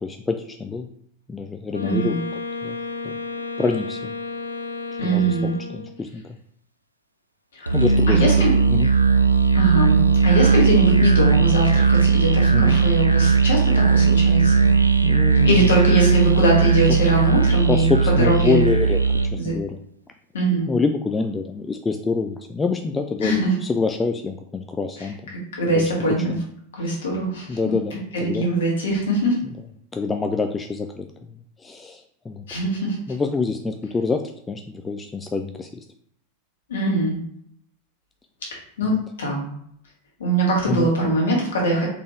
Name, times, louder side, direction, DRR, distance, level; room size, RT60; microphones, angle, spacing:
voice 1, 0.0-0.9 1.3-2.2 2.6-2.8 3.0-3.2 3.6-4.1 5.0-5.4 5.7-6.2 7.7-8.2 8.7-8.9 12.5-12.8 15.0-15.7 17.7-19.0 19.3-19.8 20.7-25.3 25.7-25.9 26.3-26.4 27.5-28.0 28.2-28.5 29.9-31.1 31.6-32.4 33.1-34.2 34.5-35.8 40.7-40.9, left 4 dB, 15° left, 5 dB, 0.3 m, -26 dB
Wind instrument woodwind instrument, 1.7-6.0, left 3 dB, 85° left, 0.4 m, -32 dB
voice 2, 1.8-2.2 5.0-5.5 7.5-7.7 8.1-8.5 9.5-14.7 15.4-18.6 19.3-19.5 20.3-20.7 23.2-23.5 25.0-26.3 26.7-27.7 28.1-29.4 32.5-33.0 36.7-37.2 38.8-39.4 40.2-41.9, right 1 dB, 60° left, -3 dB, 1.7 m, -22 dB
Musical instrument, 7.7-19.4, right 5 dB, 85° right, 0.3 m, -17 dB
4.1 x 3.3 x 3.2 m, 0.68 s
figure-of-eight pair, 90°, 0 cm